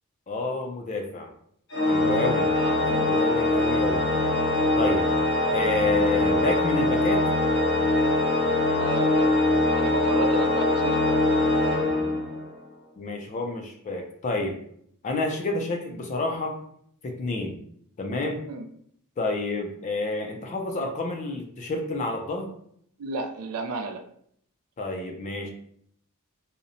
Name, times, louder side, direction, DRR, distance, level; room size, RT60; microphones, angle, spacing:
voice 1, 0.3-1.3 1.8-2.5 2.8-4.1 4.8-5.1 5.5-7.3 13.0-14.6 15.0-16.6 17.0-17.6 18.0-18.4 19.2-22.5 24.8-25.5, left 2 dB, 35° left, 3 dB, 0.3 m, -29 dB
Organ, 1.7-12.6, left 2 dB, 55° left, 0.7 m, -23 dB
voice 2, 2.6-3.1 8.8-9.3 9.7-11.4 18.5-18.7 23.0-24.1, right 3 dB, 80° right, 6 dB, 0.4 m, -32 dB
2.7 x 2.0 x 2.5 m, 0.67 s
head